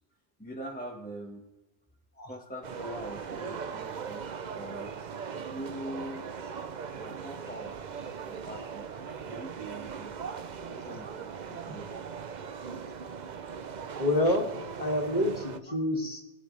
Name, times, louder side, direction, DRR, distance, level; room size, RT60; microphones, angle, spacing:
voice 1, 0.4-1.5 2.2-4.3 4.5-4.9 5.3-6.3 7.0-7.8 8.2-10.1 10.4-12.0, right 1 dB, 10° left, -1 dB, 1.3 m, -43 dB
sound 1, 2.6-15.6, right 6 dB, 45° right, 0.7 m, -39 dB
voice 2, 14.0-14.5 14.8-16.2, left 1 dB, 35° left, 1 dB, 2.3 m, -27 dB
21.0 x 9.7 x 3.3 m, 1.0 s
omnidirectional pair, 1.1 m